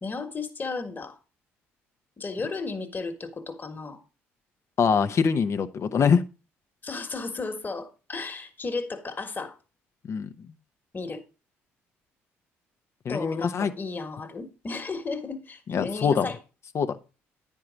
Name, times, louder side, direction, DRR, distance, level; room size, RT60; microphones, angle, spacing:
voice 1, 0.0-1.2 2.2-4.0 6.8-9.6 10.9-11.2 13.1-16.4, left 3 dB, 30° left, 1.5 m, -34 dB
voice 2, 4.8-6.2 10.1-10.3 13.0-13.7 15.7-16.3 16.7-16.9, left 6 dB, 50° left, 0.8 m, -23 dB
9.7 x 4.7 x 5.1 m
hypercardioid pair, 55°, 6 cm